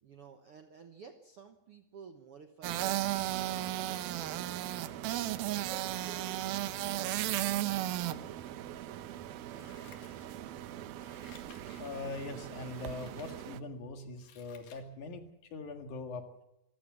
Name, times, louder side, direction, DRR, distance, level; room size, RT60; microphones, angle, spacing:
voice 1, 0.0-4.8 5.6-10.3, right 6 dB, 65° right, 5 dB, 1.5 m, -54 dB
sound 1, 2.6-13.6, right 14 dB, 90° right, 2.7 m, -36 dB
Scissors, 9.5-10.6 11.0-12.0 12.6-13.4 13.8-14.9 15.3-15.4, left 8 dB, 85° left, 3.9 m, -59 dB
voice 2, 11.8-16.3, left 3 dB, 60° left, 5 dB, 3.1 m, -42 dB
26.5 x 15.5 x 7.5 m, 0.87 s
omnidirectional pair, 4.1 m